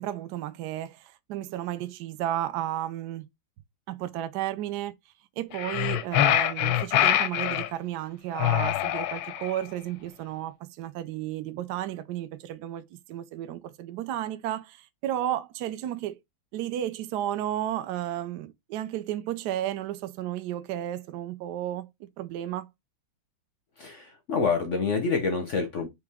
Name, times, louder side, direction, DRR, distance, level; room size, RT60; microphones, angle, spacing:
voice 1, 0.0-3.3 3.9-4.9 5.4-16.2 16.5-22.7, right 12 dB, 75° right, 1.0 m, -33 dB
sound 1, 5.5-7.7 8.4-9.6, left 12 dB, 85° left, 1.4 m, -24 dB
voice 2, 23.8-25.9, left 4 dB, 65° left, 0.7 m, -27 dB
4.8 x 3.0 x 3.4 m
omnidirectional pair, 2.2 m